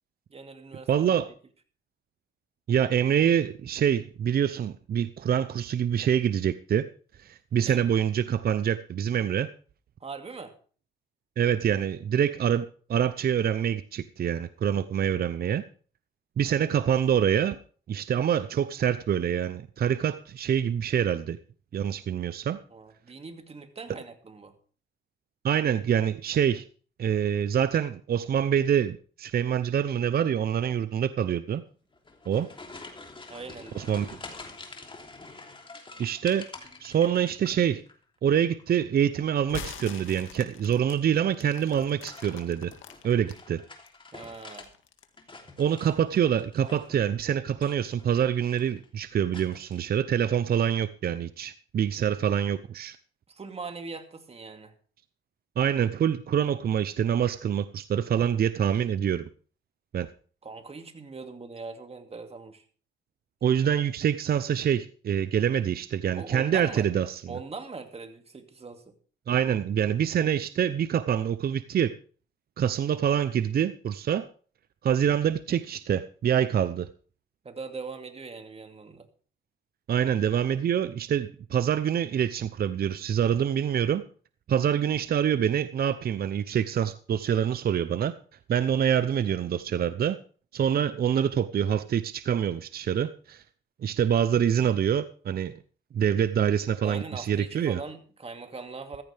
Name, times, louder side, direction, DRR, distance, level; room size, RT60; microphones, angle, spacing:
voice 1, 0.3-0.9 7.6-7.8 10.0-10.5 22.7-24.5 33.3-34.1 44.1-44.7 53.3-54.7 60.4-62.6 66.2-66.9 67.3-68.9 77.4-79.1 96.8-99.0, right 4 dB, 30° right, 6 dB, 2.4 m, -41 dB
voice 2, 0.9-1.3 2.7-6.9 7.2-9.5 11.4-12.6 12.9-15.6 16.4-17.6 17.9-21.4 21.7-22.6 25.4-26.7 27.0-31.6 32.3-32.5 33.7-34.2 36.0-36.5 36.8-37.8 38.2-42.7 43.0-43.6 45.6-53.0 55.6-59.2 59.9-60.1 63.4-67.4 69.3-71.9 72.6-74.3 74.8-76.9 79.9-84.0 84.5-88.1 88.5-90.2 90.5-93.4 93.8-95.5 95.9-97.8, right 9 dB, 50° right, 13 dB, 0.7 m, -26 dB
sound 1, 31.9-37.9 38.2-38.8 40.2-40.6 41.6-44.7 45.0-47.1 47.5-48.1 48.4-48.9 49.3-49.8, left 3 dB, 25° left, 3.2 m, -47 dB
sound 2, 39.4-43.4 43.9-45.2, left 7 dB, 75° left, 2.0 m, -43 dB
15.0 x 14.0 x 3.5 m, 0.41 s
cardioid pair, 90°, 20 cm